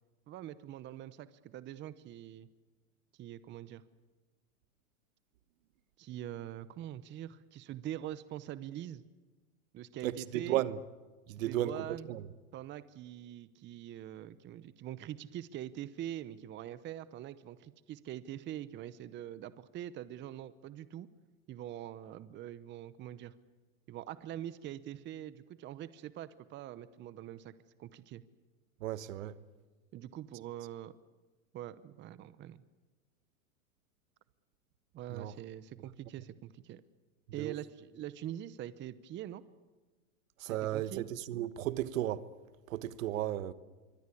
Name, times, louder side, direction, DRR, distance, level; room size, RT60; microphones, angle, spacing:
voice 1, 0.3-2.5 3.2-3.8 6.0-9.0 9.7-10.6 11.4-12.1 12.5-21.1 21.5-23.3 23.9-27.5 27.8-28.2 29.9-30.9 31.5-32.6 34.9-36.8 37.3-39.4 40.5-41.1, right 12 dB, 25° right, 0.9 m, -44 dB
voice 2, 10.0-10.8 11.3-12.2 28.8-29.3 35.1-35.3 37.4-37.5 40.4-42.3 42.7-43.5, right 13 dB, 70° right, 1.3 m, -34 dB
25.5 x 24.0 x 8.5 m
hypercardioid pair, 125°, 42 cm